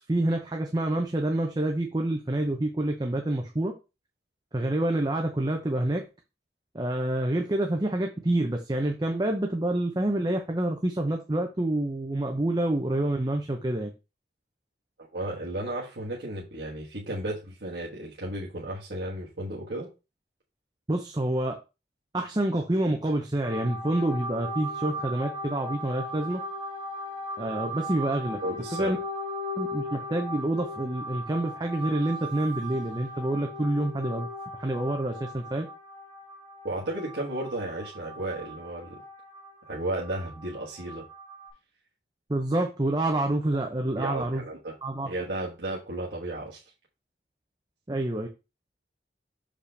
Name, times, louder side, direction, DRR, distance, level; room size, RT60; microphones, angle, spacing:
voice 1, 0.1-3.7 4.5-6.0 6.7-13.9 20.9-21.6 22.1-26.4 27.4-28.4 28.7-29.0 29.6-34.3 34.6-35.7 42.3-44.4 44.8-45.1 47.9-48.3, right 1 dB, 25° right, 3 dB, 0.7 m, -27 dB
voice 2, 15.1-19.9 28.4-29.0 36.6-39.0 39.7-41.1 44.0-44.7 45.1-46.6, right 1 dB, 80° right, -4 dB, 1.4 m, -34 dB
sound 1, 23.4-41.5, equal, ahead, 4.1 m, -38 dB
6.7 x 5.0 x 3.3 m, 0.28 s
head